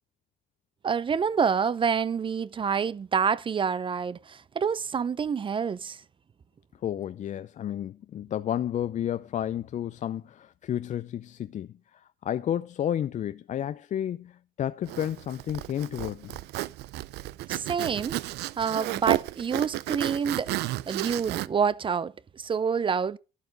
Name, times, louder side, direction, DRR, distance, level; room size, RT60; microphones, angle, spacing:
voice 1, 0.8-6.0 17.5-18.2 18.6-20.5 20.9-23.2, right 6 dB, 30° right, 0.6 m, -27 dB
voice 2, 6.8-16.4, left 10 dB, 45° left, 0.5 m, -31 dB
Zipper (clothing), 14.9-21.5, right 16 dB, 80° right, 0.6 m, -32 dB
12.5 x 9.5 x 4.0 m
cardioid pair, 110°, 17 cm